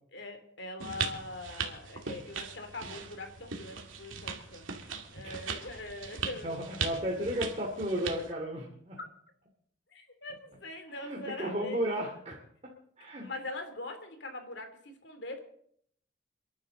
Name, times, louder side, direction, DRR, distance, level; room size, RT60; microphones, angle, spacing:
voice 1, 0.1-6.6 9.0-9.1 9.9-11.8 13.2-15.4, left 2 dB, 60° left, 6 dB, 2.9 m, -42 dB
sound 1, 0.8-8.3, right 5 dB, 80° right, 2.3 m, -39 dB
voice 2, 6.4-9.0 10.9-13.3, equal, 35° right, -3 dB, 2.5 m, -34 dB
29.0 x 11.5 x 3.9 m, 0.66 s
head